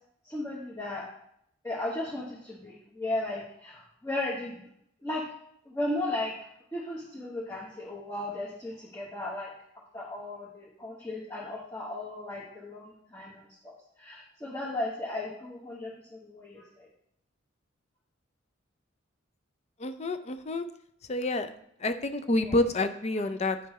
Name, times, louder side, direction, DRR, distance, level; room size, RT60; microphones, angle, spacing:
voice 1, 0.2-1.1 1.6-4.6 5.0-5.2 5.7-6.3 6.7-9.5 9.9-16.9 22.4-22.6, left 1 dB, 15° left, -5 dB, 1.2 m, -35 dB
voice 2, 19.8-20.7 21.1-21.5 21.8-23.7, left 2 dB, 30° left, 10 dB, 0.5 m, -28 dB
9.6 x 5.7 x 3.2 m, 0.71 s
head